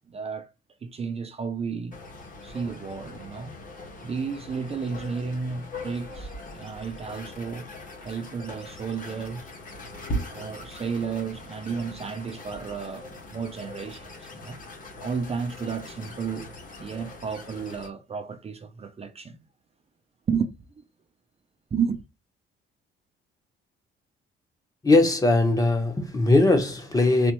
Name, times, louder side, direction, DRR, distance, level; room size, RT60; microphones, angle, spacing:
voice 1, 0.1-0.5 0.8-2.0 2.4-3.5 4.0-7.7 8.0-9.5 10.3-14.6 15.0-16.5 16.8-19.4 20.3-20.8 21.7-22.0, right 6 dB, 30° right, 0.6 m, -32 dB
sound 1, 1.9-17.9, equal, 40° left, 1.6 m, -40 dB
voice 2, 24.8-27.3, left 2 dB, 15° left, 1.0 m, -20 dB
4.3 x 3.1 x 3.0 m
cardioid pair, 120°, 21 cm